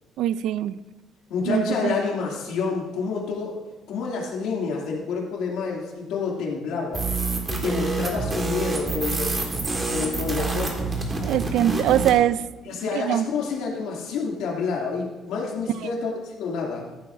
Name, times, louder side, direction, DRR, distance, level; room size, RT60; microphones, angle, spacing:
voice 1, 0.2-0.8 1.5-1.9 11.2-12.4 12.9-13.2 15.8-15.9, right 11 dB, 65° right, 16 dB, 0.4 m, -22 dB
voice 2, 1.3-3.6 3.9-7.1 7.5-9.4 9.9-11.0 12.7-16.9, left 5 dB, 80° left, -2 dB, 2.6 m, -28 dB
sound 1, 6.9-12.2, right 3 dB, 20° right, 1.7 m, -27 dB
14.0 x 11.0 x 2.7 m, 1.1 s
cardioid pair, 165°, 0 cm